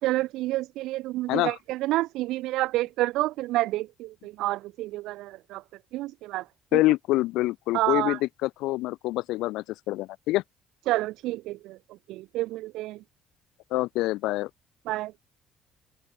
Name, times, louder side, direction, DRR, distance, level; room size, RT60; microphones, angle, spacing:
voice 1, 0.0-5.6 5.9-6.4 6.7-6.8 7.7-8.2 10.9-11.8 12.1-13.0 14.8-15.1, right 17 dB, 75° right, 1.5 m, -29 dB
voice 2, 6.7-10.4 13.7-14.5, left 18 dB, 75° left, 2.4 m, -26 dB
supercardioid pair, 65°, 0 cm